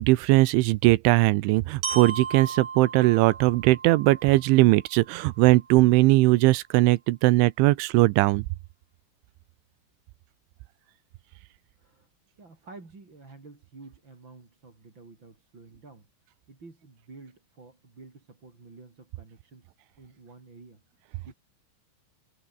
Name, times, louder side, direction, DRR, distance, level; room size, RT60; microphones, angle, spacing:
voice 1, 0.0-8.4, right 20 dB, 85° right, 3.2 m, -20 dB
Glockenspiel, 1.8-5.8, right 6 dB, 45° right, 5.0 m, -37 dB
voice 2, 11.8-12.1 12.4-16.1 16.5-20.8 21.2-21.3, right 3 dB, 25° right, 4.7 m, -50 dB
omnidirectional pair, 5.4 m